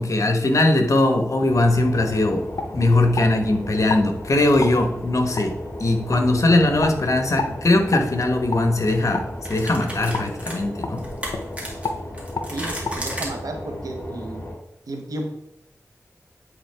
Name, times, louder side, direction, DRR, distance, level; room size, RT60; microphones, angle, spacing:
voice 1, 0.0-2.5 2.7-5.5 5.8-11.0, left 2 dB, 60° left, 4 dB, 1.1 m, -20 dB
sound 1, 1.4-1.6 2.0-2.1 2.6-3.3 3.9-4.1 4.6-4.8 5.4-5.5 6.1-6.2 6.8-7.0 7.4-7.5 7.9-8.1 8.5-8.6 9.1-9.3 10.1-10.3 10.8-11.0 11.3-11.5 11.8-12.0 12.3-12.5 12.8-13.0, left 3 dB, 80° left, 0.6 m, -28 dB
sound 2, 1.5-14.6, left 1 dB, 40° left, 1.8 m, -35 dB
sound 3, 6.7-6.9 8.3-8.5 8.9-9.0 9.4-13.3, right 1 dB, 20° right, 2.2 m, -34 dB
voice 2, 12.5-14.5 14.9-15.3, right 2 dB, 85° right, 3 dB, 1.0 m, -32 dB
9.3 x 3.8 x 3.4 m, 0.82 s
wide cardioid pair, 55°, 6 cm